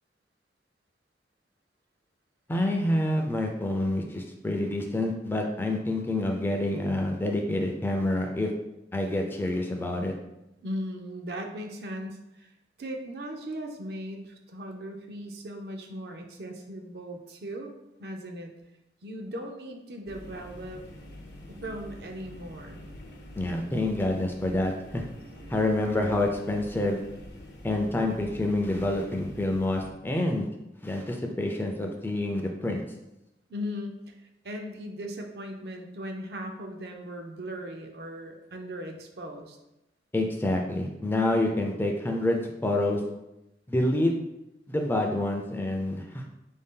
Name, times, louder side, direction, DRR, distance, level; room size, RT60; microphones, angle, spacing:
voice 1, 2.5-8.5 8.9-10.1 23.4-25.0 25.5-27.0 27.6-30.5 30.8-32.8 40.1-43.0 43.7-44.1 44.7-46.2, left 1 dB, 10° left, 2 dB, 0.3 m, -27 dB
voice 2, 10.6-12.5 12.8-17.7 18.0-18.5 19.0-20.8 21.5-22.8 33.5-34.1 34.4-39.6, equal, 65° right, 3 dB, 0.5 m, -38 dB
sound 1, 20.1-29.9, left 1 dB, 90° left, 0.8 m, -46 dB
4.1 x 2.7 x 3.6 m, 0.91 s
head